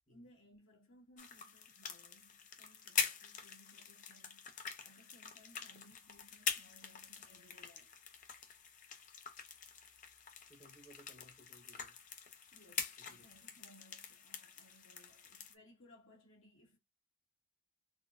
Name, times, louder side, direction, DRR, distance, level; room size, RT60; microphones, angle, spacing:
voice 1, 0.1-7.9 12.5-16.8, equal, 75° left, 1.8 m, -64 dB
sound 1, 1.2-15.5, left 7 dB, 40° left, 0.5 m, -44 dB
voice 2, 10.5-12.0 13.0-13.3, right 1 dB, 20° left, 1.1 m, -62 dB
4.0 x 2.2 x 2.5 m
head